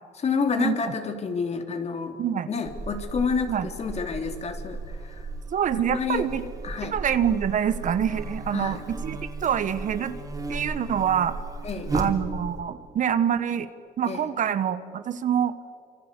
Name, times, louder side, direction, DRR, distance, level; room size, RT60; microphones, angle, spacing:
voice 1, 0.2-2.2 2.5-5.3 5.7-6.3 6.6-6.9 8.5-8.8 11.6-12.2 14.1-14.3, left 5 dB, 40° left, 6 dB, 3.3 m, -29 dB
voice 2, 2.2-2.5 3.5-3.7 5.5-6.4 6.8-10.2 10.5-11.4 11.9-13.7 14.0-15.5, right 9 dB, 50° right, 12 dB, 1.4 m, -26 dB
Buzz, 2.6-12.6, right 2 dB, 20° right, 3.9 m, -35 dB
26.0 x 26.0 x 8.3 m, 2.3 s
cardioid pair, 110°, 17 cm